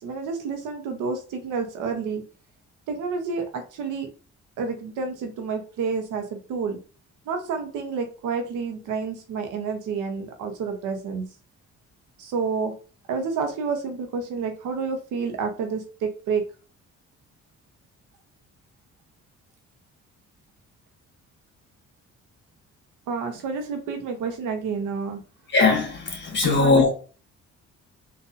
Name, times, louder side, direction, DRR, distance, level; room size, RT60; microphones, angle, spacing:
voice 1, 0.0-2.2 2.9-4.1 4.6-6.8 7.3-11.3 12.2-12.7 13.1-16.4 23.1-25.2 26.4-26.8, right 5 dB, 90° right, 0.9 m, -29 dB
voice 2, 25.5-26.9, left 3 dB, 35° left, 1.4 m, -20 dB
4.1 x 2.6 x 2.5 m
cardioid pair, 90°, 30 cm